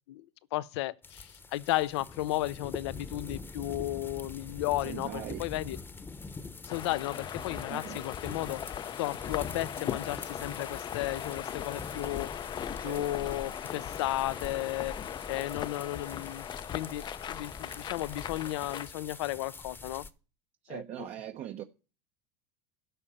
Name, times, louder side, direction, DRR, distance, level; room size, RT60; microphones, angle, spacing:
voice 1, 0.5-5.8 6.6-8.6 9.0-12.5 12.8-15.0 15.3-16.5 16.7-20.1 20.7-20.8, left 16 dB, 75° left, 0.6 m, -34 dB
sound 1, 1.0-20.1, left 3 dB, 15° left, 0.9 m, -44 dB
voice 2, 4.8-5.5 7.7-8.0 12.8-13.0 20.6-21.6, right 11 dB, 50° right, 0.9 m, -40 dB
sound 2, 6.7-18.9, left 9 dB, 30° left, 0.5 m, -39 dB
12.5 x 5.5 x 8.5 m
supercardioid pair, 105°, 14 cm